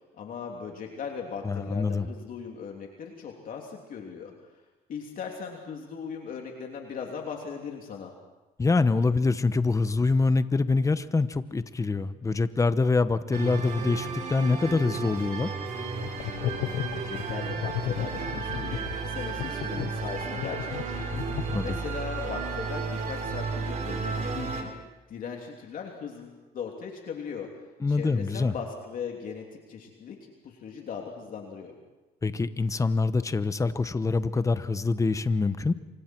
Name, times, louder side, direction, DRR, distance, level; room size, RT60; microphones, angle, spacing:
voice 1, 0.1-4.3 4.9-8.1 16.6-24.7 25.1-27.5 27.9-30.2 30.4-31.7, left 6 dB, 55° left, 1 dB, 3.1 m, -38 dB
voice 2, 1.4-2.1 8.6-15.5 21.5-21.8 27.8-28.5 32.2-35.7, left 3 dB, 20° left, 13 dB, 1.0 m, -25 dB
sound 1, 13.3-24.6, right 5 dB, 45° right, 4.0 m, -33 dB
sound 2, 15.9-22.0, left 13 dB, 75° left, 0.7 m, -35 dB
27.5 x 25.5 x 4.6 m, 1.1 s
cardioid pair, 110°, 17 cm